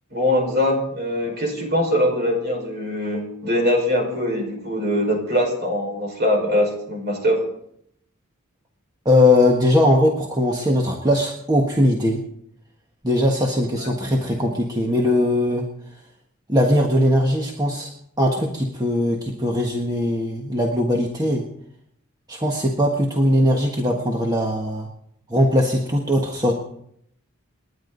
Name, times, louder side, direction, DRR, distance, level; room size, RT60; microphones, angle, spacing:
voice 1, 0.1-7.4 13.8-13.9, left 1 dB, 50° right, 2 dB, 5.3 m, -22 dB
voice 2, 9.0-12.2 13.0-15.7 16.5-17.9 18.2-21.5 22.3-24.9 25.3-26.5, left 1 dB, 15° right, 0 dB, 1.5 m, -20 dB
29.0 x 10.5 x 4.0 m, 0.71 s
head